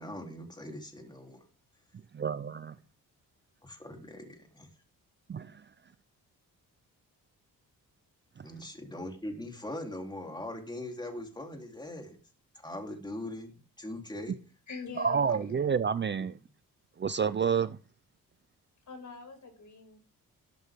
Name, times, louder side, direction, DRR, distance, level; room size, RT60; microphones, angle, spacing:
voice 1, 0.0-1.4 3.6-4.7 8.4-12.2 12.6-14.4 15.3-15.6, left 1 dB, 10° left, 3.4 m, -41 dB
voice 2, 2.1-2.7 5.3-5.6 8.4-8.5 15.0-16.4 17.0-17.8, right 6 dB, 30° right, 0.5 m, -29 dB
voice 3, 14.7-15.4 18.9-20.0, left 4 dB, 55° left, 6.0 m, -44 dB
12.5 x 12.0 x 3.6 m
cardioid pair, 90°, 35 cm